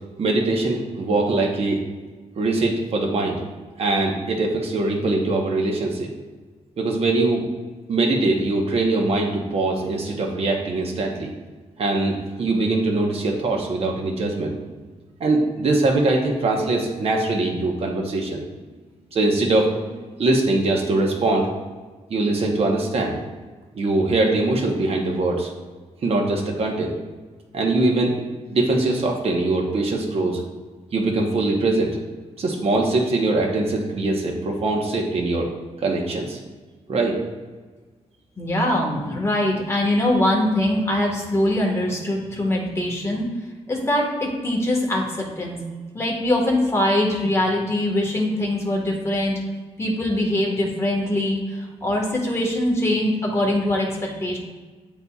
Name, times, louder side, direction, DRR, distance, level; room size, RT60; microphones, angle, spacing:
voice 1, 0.2-1.8 2.4-3.4 3.8-6.1 6.8-7.4 7.9-11.4 11.8-14.5 15.2-18.4 19.1-21.5 22.1-23.1 23.7-25.5 26.0-26.9 27.5-28.1 28.5-30.4 30.9-32.0 32.4-35.5 35.8-36.4 36.9-37.2, right 2 dB, 55° right, 0 dB, 1.0 m, -22 dB
voice 2, 38.4-43.3 43.7-45.6 45.9-49.4 49.8-54.4, left 1 dB, 20° left, -2 dB, 1.5 m, -22 dB
9.9 x 4.0 x 2.4 m, 1.4 s
cardioid pair, 105°, 12 cm